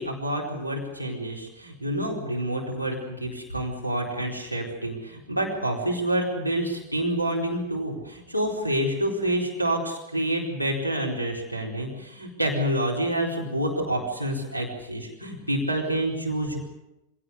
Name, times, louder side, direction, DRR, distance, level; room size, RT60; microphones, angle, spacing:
voice 1, 0.0-16.6, right 1 dB, 90° left, 0 dB, 4.4 m, -28 dB
25.0 x 17.5 x 8.2 m, 0.92 s
figure-of-eight pair, 90°, 0 cm